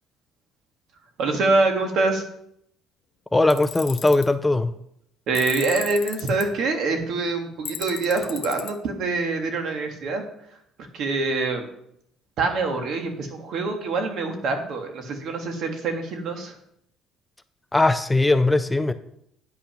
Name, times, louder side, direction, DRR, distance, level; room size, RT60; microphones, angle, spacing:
voice 1, 1.2-2.2 5.3-10.2 10.9-11.7 12.4-16.5, right 3 dB, 60° right, 4 dB, 1.8 m, -25 dB
voice 2, 3.3-4.7 17.7-18.9, left 2 dB, 10° left, 10 dB, 0.4 m, -19 dB
Tools, 3.5-4.3 5.3-6.4 7.7-8.7, left 9 dB, 50° left, 0.9 m, -35 dB
9.7 x 6.0 x 5.9 m, 0.73 s
cardioid pair, 135°, 0 cm